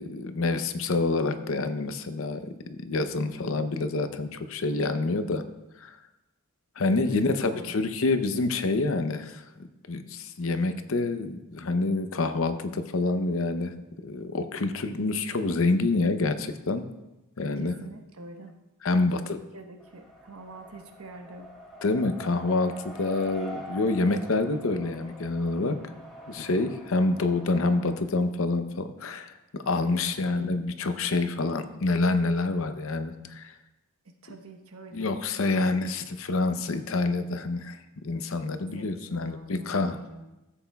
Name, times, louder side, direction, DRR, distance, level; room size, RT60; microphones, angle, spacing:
voice 1, 0.0-5.4 5.8-6.0 6.8-9.4 9.9-13.7 14.0-16.8 17.4-17.7 18.8-19.4 21.8-25.8 26.3-33.5 34.9-40.0, left 3 dB, 65° left, 9 dB, 0.6 m, -27 dB
voice 2, 7.1-7.7 17.6-18.5 18.9-19.2 19.5-21.6 29.9-30.6 34.0-35.1 35.8-35.9 38.7-40.3, right 2 dB, 80° right, 4 dB, 1.1 m, -46 dB
Race car auto racing, 19.8-28.0, equal, ahead, 1.4 m, -45 dB
14.0 x 7.8 x 2.3 m, 1.0 s
head